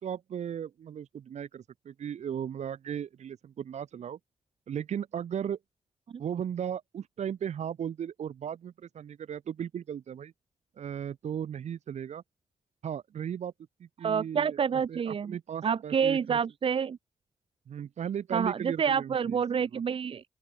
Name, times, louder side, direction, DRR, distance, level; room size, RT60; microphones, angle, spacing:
voice 1, 0.0-4.2 4.7-5.6 6.2-10.3 10.8-12.2 12.8-13.5 13.8-16.4 17.7-19.4 19.7-19.8, right 9 dB, 75° right, 1.3 m, -36 dB
voice 2, 14.0-15.4 15.6-17.0 18.3-20.2, right 7 dB, 50° right, 0.5 m, -28 dB
open air
cardioid pair, 65°, 12 cm